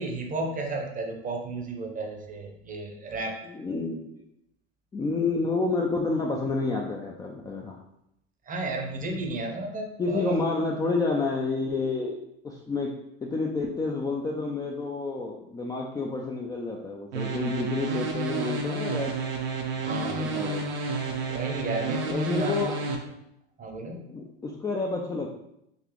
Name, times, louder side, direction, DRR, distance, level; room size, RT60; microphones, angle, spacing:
voice 1, 0.0-3.4 8.4-10.4 19.8-20.3 21.3-22.7 23.6-24.0, right 2 dB, 25° right, 2 dB, 0.7 m, -33 dB
voice 2, 3.5-4.2 4.9-7.8 10.0-12.9 13.2-19.1 20.0-20.6 22.1-22.7 23.9-25.3, left 3 dB, 10° left, -2 dB, 0.3 m, -29 dB
sound 1, 17.1-23.0, right 3 dB, 70° right, 0.8 m, -30 dB
4.0 x 2.8 x 3.0 m, 0.79 s
hypercardioid pair, 90°, 32 cm